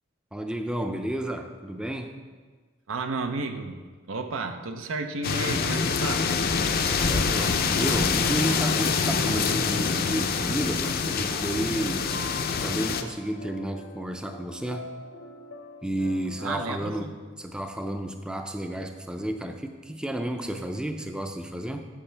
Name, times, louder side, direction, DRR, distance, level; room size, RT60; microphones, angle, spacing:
voice 1, 0.3-2.1 6.9-12.1 12.5-14.8 15.8-17.1 17.4-21.9, right 1 dB, 5° right, 5 dB, 0.4 m, -31 dB
voice 2, 2.9-3.8 4.1-6.3 16.4-17.2, right 3 dB, 85° right, 7 dB, 0.7 m, -32 dB
sound 1, 5.2-13.0, left 5 dB, 50° left, 0.5 m, -25 dB
sound 2, 11.2-16.8, left 2 dB, 80° left, 0.9 m, -44 dB
9.8 x 6.7 x 3.3 m, 1.5 s
head